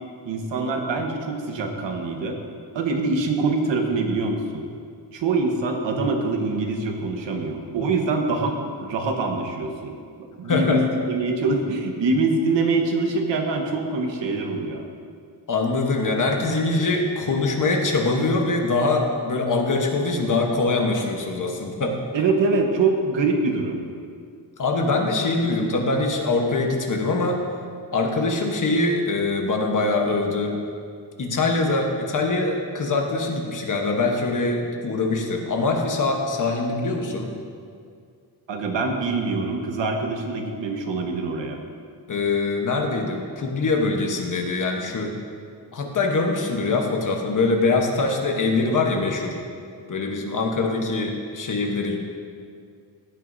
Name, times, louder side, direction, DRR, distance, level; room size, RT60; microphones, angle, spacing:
voice 1, 0.2-2.4 2.7-4.6 5.1-8.5 8.8-9.9 10.4-14.8 22.1-23.8 38.5-41.6, right 3 dB, 75° right, 2 dB, 1.3 m, -24 dB
voice 2, 10.5-10.8 15.5-22.0 24.6-27.4 27.9-30.6 31.2-37.3 42.1-45.1 45.7-49.4 49.9-52.0, left 3 dB, 45° left, 2 dB, 1.2 m, -23 dB
16.0 x 9.4 x 2.7 m, 2.2 s
wide cardioid pair, 160°, 44 cm